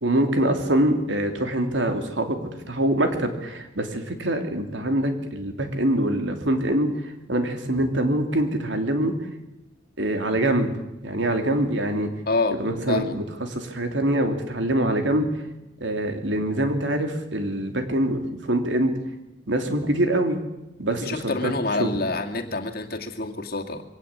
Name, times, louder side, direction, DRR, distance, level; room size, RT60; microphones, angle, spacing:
voice 1, 0.0-2.4 2.7-9.1 10.0-10.7 11.0-12.1 12.5-15.3 15.8-18.9 19.5-20.4 20.8-21.5 21.8-21.9, right 1 dB, 75° right, 6 dB, 3.1 m, -24 dB
voice 2, 12.3-12.6 12.9-13.1 20.9-23.8, left 2 dB, 50° left, 4 dB, 2.1 m, -27 dB
23.0 x 17.5 x 8.6 m, 0.95 s
head